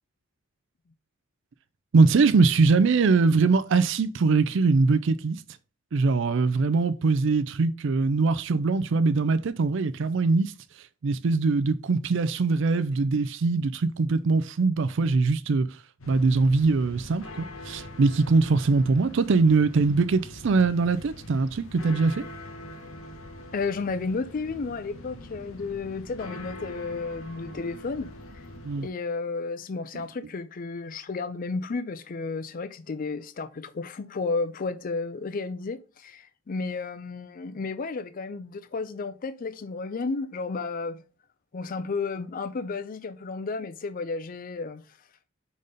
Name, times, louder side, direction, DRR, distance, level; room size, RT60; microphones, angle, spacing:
voice 1, 1.9-5.4 5.9-10.5 10.8-15.8 16.1-22.3 28.6-28.9 29.9-30.0, right 4 dB, 65° right, 0.4 m, -22 dB
sound 1, 16.0-28.9, left 1 dB, 90° left, 1.2 m, -43 dB
voice 2, 23.5-28.1 28.3-28.4 28.8-41.0 41.5-44.8, left 4 dB, 45° left, 0.4 m, -32 dB
5.2 x 4.1 x 5.0 m
head